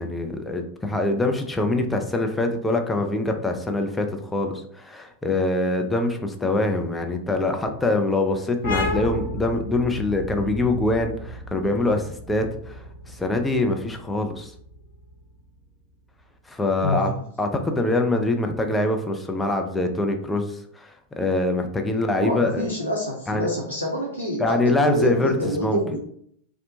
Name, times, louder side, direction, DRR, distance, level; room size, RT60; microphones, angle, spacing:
voice 1, 0.0-14.5 16.5-17.1 17.4-22.6 23.3-23.5 24.4-25.8, left 2 dB, 10° left, 4 dB, 0.4 m, -24 dB
sound 1, 8.6-15.9, left 1 dB, 65° left, 1.0 m, -33 dB
voice 2, 16.8-17.2 22.2-26.0, equal, 85° right, -3 dB, 0.5 m, -26 dB
2.7 x 2.1 x 2.7 m, 0.65 s
figure-of-eight pair, 90°, 0 cm